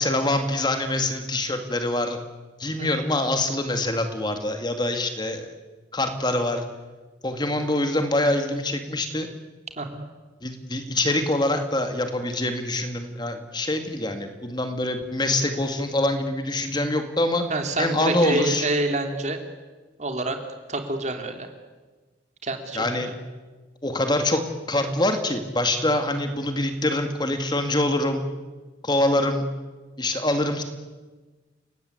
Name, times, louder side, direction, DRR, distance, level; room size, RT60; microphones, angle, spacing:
voice 1, 0.0-2.2 2.6-5.5 5.9-6.6 7.2-9.3 10.4-17.4 17.8-18.7 22.7-23.1 23.8-24.4 24.7-28.2 28.8-29.4 30.0-30.6, left 1 dB, 25° left, 6 dB, 2.2 m, -24 dB
voice 2, 9.8-10.1 17.5-19.4 20.0-20.4 20.7-21.5 22.4-22.8, right 2 dB, 40° right, 5 dB, 3.2 m, -27 dB
29.5 x 18.0 x 9.5 m, 1.3 s
head